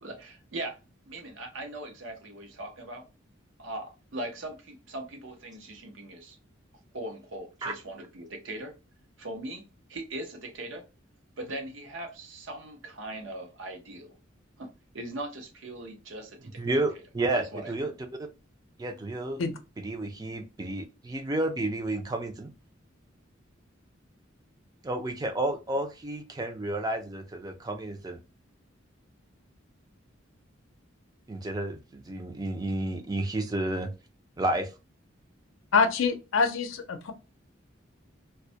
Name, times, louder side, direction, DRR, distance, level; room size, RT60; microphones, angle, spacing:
voice 1, 0.0-0.8 1.1-3.1 3.6-6.4 6.9-8.7 9.2-10.9 11.4-14.1 14.6-16.6 17.3-17.9, right 1 dB, 75° right, 0.7 m, -40 dB
voice 2, 16.6-18.3 18.8-19.4 19.8-22.5 24.8-28.2 31.3-33.9 34.4-34.7, right 2 dB, 20° right, 0.4 m, -31 dB
voice 3, 35.7-37.1, left 5 dB, 90° left, 0.5 m, -25 dB
2.2 x 2.1 x 2.6 m
head